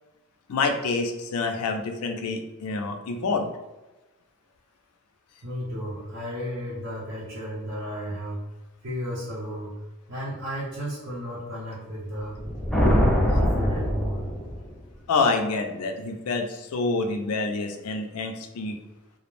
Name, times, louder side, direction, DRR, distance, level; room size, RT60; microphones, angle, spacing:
voice 1, 0.5-3.5 15.1-18.8, left 3 dB, 85° left, 6 dB, 0.4 m, -27 dB
voice 2, 5.4-8.4 8.8-9.7 10.1-12.4 12.8-14.3, equal, 55° right, -6 dB, 0.6 m, -33 dB
sound 1, 12.3-14.8, equal, ahead, 0.4 m, -23 dB
2.3 x 2.0 x 3.0 m, 1.1 s
head